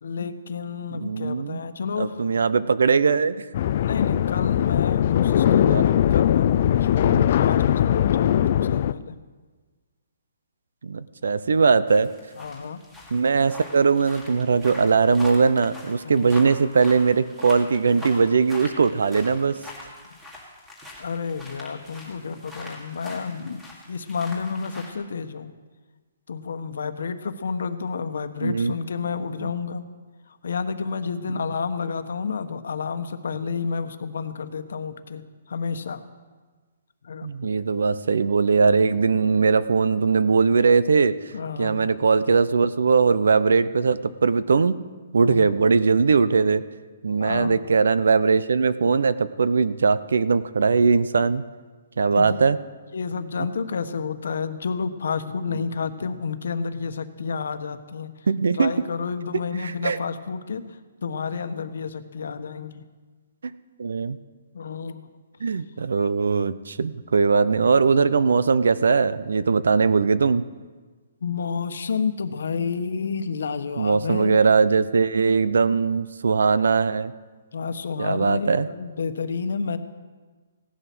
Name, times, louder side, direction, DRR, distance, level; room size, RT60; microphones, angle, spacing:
voice 1, 0.0-2.3 3.8-9.2 12.4-12.8 16.0-16.3 21.0-23.6 23.9-25.5 26.3-29.8 30.4-36.0 37.0-37.5 41.3-41.8 45.2-45.5 47.2-47.6 52.2-52.4 52.9-58.1 58.5-60.6 61.0-62.8 64.5-65.1 65.5-65.6 71.2-74.4 77.5-79.8, left 5 dB, 70° left, 9 dB, 1.1 m, -30 dB
voice 2, 0.9-1.6 2.0-3.5 5.4-5.8 7.0-7.3 10.8-12.1 13.1-19.6 28.4-28.7 29.4-29.5 31.3-31.4 37.2-41.2 41.6-44.8 45.1-46.6 47.0-51.4 52.0-52.6 55.5-55.6 58.3-58.7 59.3-60.0 63.8-64.2 65.4-70.4 73.8-77.1 78.0-78.7, right 5 dB, 90° right, 16 dB, 0.7 m, -20 dB
sound 1, 3.5-8.9, left 10 dB, 35° left, 0.4 m, -20 dB
sound 2, 11.9-24.9, left 1 dB, 5° right, 2.0 m, -43 dB
16.5 x 11.5 x 6.1 m, 1.4 s
hypercardioid pair, 175°, 0 cm